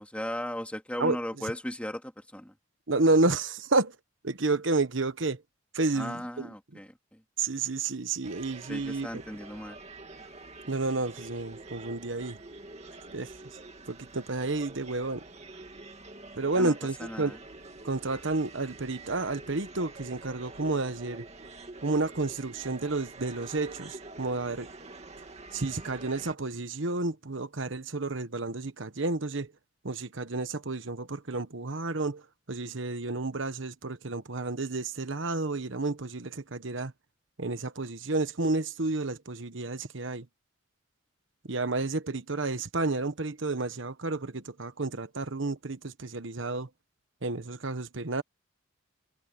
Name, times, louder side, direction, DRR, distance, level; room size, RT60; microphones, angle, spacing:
voice 1, 0.0-2.5 5.9-7.2 8.7-9.8 16.6-16.7 17.0-17.4, equal, 5° left, 2.3 m, -37 dB
voice 2, 2.9-4.0 4.2-5.4 5.7-6.5 7.4-9.2 10.7-12.4 13.1-13.3 13.9-15.2 16.4-17.4 17.8-21.2 21.8-24.7 25.5-29.5 29.8-32.2 32.5-36.9 37.4-40.3 41.5-46.7 47.2-48.2, right 3 dB, 70° right, 1.2 m, -30 dB
sound 1, 8.2-26.3, right 2 dB, 30° right, 2.4 m, -47 dB
head